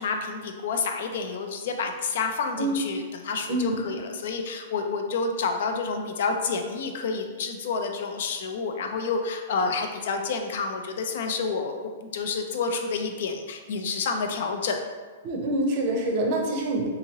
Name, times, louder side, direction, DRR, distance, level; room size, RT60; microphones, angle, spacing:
voice 1, 0.0-14.8, left 4 dB, 65° left, 4 dB, 0.4 m, -29 dB
voice 2, 3.5-3.8 15.2-16.9, right 1 dB, 45° right, 1 dB, 0.6 m, -26 dB
2.8 x 2.7 x 2.8 m, 1.5 s
hypercardioid pair, 140°, 0 cm